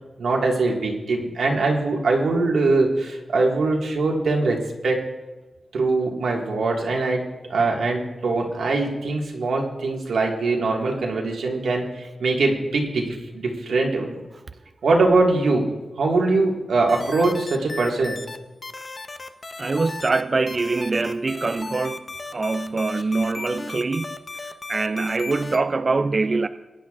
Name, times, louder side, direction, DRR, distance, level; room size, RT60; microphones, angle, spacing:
voice 1, 0.2-5.0 5.7-14.2 14.8-15.7 16.0-18.2, right 3 dB, 90° right, 1.9 m, -22 dB
sound 1, 16.9-18.4 18.6-20.2 20.5-25.6, left 3 dB, 30° left, 0.6 m, -35 dB
voice 2, 19.6-26.5, right 3 dB, 35° right, 0.3 m, -24 dB
21.0 x 10.5 x 2.5 m
wide cardioid pair, 165°, 0 cm